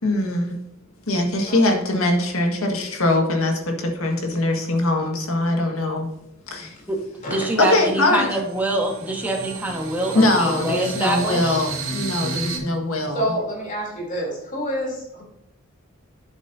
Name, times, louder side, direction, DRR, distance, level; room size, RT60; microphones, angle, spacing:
voice 1, 0.0-0.5 1.1-6.1 6.5-6.8 7.6-8.3 10.1-13.3, left 2 dB, 80° left, 2 dB, 1.8 m, -22 dB
voice 2, 6.6-7.0 7.3-11.6, right 1 dB, 10° right, 0 dB, 1.5 m, -25 dB
sound 1, 7.2-7.3 7.7-12.6, right 3 dB, 75° right, 2.5 m, -32 dB
voice 3, 13.1-15.2, equal, 40° left, -3 dB, 3.4 m, -28 dB
10.5 x 7.5 x 2.8 m, 0.86 s
head